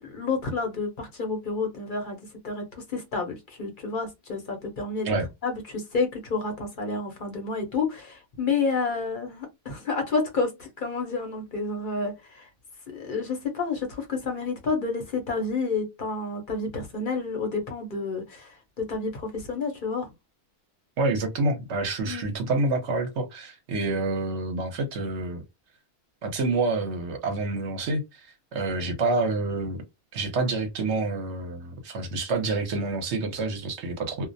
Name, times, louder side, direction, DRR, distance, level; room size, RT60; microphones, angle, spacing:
voice 1, 0.0-2.2 2.4-2.6 2.9-5.1 5.4-12.4 12.9-20.1 22.1-22.3, left 4 dB, 45° left, 0.7 m, -30 dB
voice 2, 21.0-25.4 26.2-29.8 30.1-34.3, right 3 dB, 60° right, 0.9 m, -28 dB
2.4 x 2.0 x 2.6 m
omnidirectional pair, 1.5 m